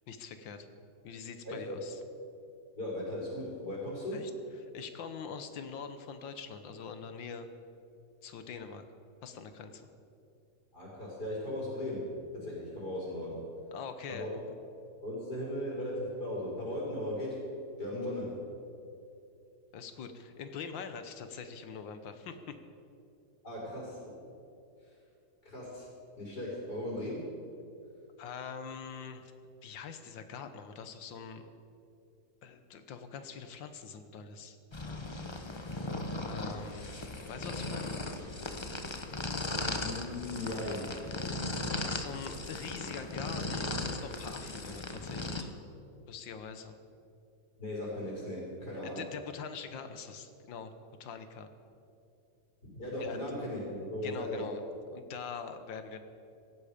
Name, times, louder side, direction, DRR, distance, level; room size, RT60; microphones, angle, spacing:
voice 1, 0.1-0.7 1.0-2.0 4.1-4.3 4.6-7.5 8.2-8.8 9.2-9.9 13.7-14.3 19.7-22.6 28.2-29.3 29.6-31.5 32.4-34.6 36.3-36.9 37.3-38.0 41.7-45.5 46.1-46.8 48.8-50.7 51.0-51.5 53.0-53.2 54.0-54.6 54.9-56.0, left 6 dB, 85° left, 9 dB, 1.8 m, -44 dB
voice 2, 1.4-1.8 2.8-4.2 10.7-12.0 12.3-13.4 14.1-14.3 15.0-17.4 17.8-18.3 23.4-24.1 25.4-25.9 26.2-27.2 39.8-40.9 47.6-49.0 52.7-54.5, left 1 dB, 60° left, -6 dB, 5.3 m, -37 dB
sound 1, 34.7-45.4, left 2 dB, 20° left, 0.7 m, -37 dB
17.5 x 15.5 x 5.1 m, 2.7 s
omnidirectional pair, 2.0 m